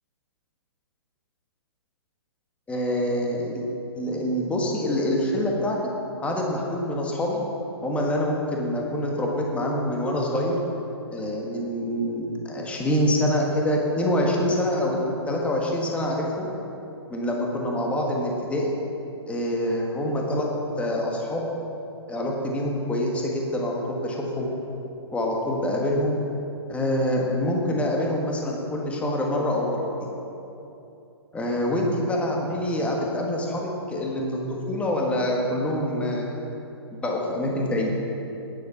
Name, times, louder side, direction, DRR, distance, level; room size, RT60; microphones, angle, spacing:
voice 1, 2.7-3.6 3.9-5.8 6.2-7.4 7.8-10.6 11.1-15.0 15.3-16.5 17.1-18.7 19.3-20.5 20.8-21.4 22.1-24.5 25.1-26.2 26.7-30.1 31.3-36.3 36.9-37.9, left 1 dB, 10° left, -1 dB, 1.5 m, -26 dB
11.5 x 9.8 x 5.7 m, 2.8 s
hypercardioid pair, 140°, 14 cm